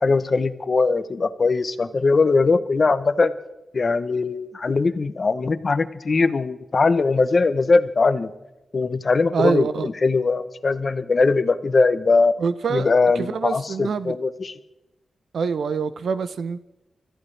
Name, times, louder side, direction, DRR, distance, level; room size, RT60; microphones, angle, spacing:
voice 1, 0.0-3.3 3.7-8.3 8.7-12.3 12.7-14.5, left 4 dB, 35° left, 0.8 m, -20 dB
voice 2, 9.3-9.9 12.4-12.9 13.1-14.2 15.3-16.6, right 5 dB, 70° right, 0.6 m, -25 dB
30.0 x 14.5 x 3.3 m
wide cardioid pair, 175°, 0 cm